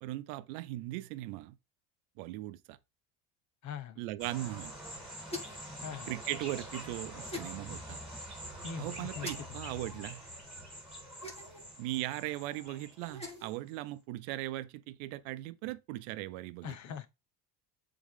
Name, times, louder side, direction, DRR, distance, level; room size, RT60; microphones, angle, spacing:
voice 1, 0.0-1.6 2.2-2.8 4.0-4.7 6.1-8.0 8.8-10.2 11.8-16.7, right 16 dB, 85° right, 0.8 m, -39 dB
voice 2, 3.6-4.0 5.8-6.1 8.6-9.6 16.6-17.1, left 7 dB, 45° left, 1.1 m, -42 dB
sound 1, 4.2-13.8, equal, ahead, 3.3 m, -45 dB
sound 2, 5.3-5.7 7.3-7.5 9.2-9.4 11.2-11.7 13.0-13.5, left 2 dB, 15° left, 2.4 m, -42 dB
7.3 x 3.9 x 3.7 m
cardioid pair, 125°, 41 cm